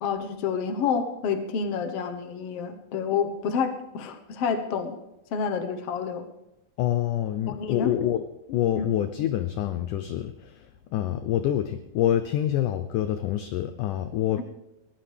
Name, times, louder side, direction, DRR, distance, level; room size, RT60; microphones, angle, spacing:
voice 1, 0.0-5.0 5.3-6.3 7.5-7.9 8.8-8.9 14.4-14.5, left 6 dB, 65° left, 7 dB, 1.5 m, -29 dB
voice 2, 6.8-8.2 8.5-10.7 10.9-14.4, left 11 dB, 80° left, 10 dB, 1.8 m, -26 dB
21.5 x 17.0 x 3.5 m, 0.93 s
omnidirectional pair, 4.4 m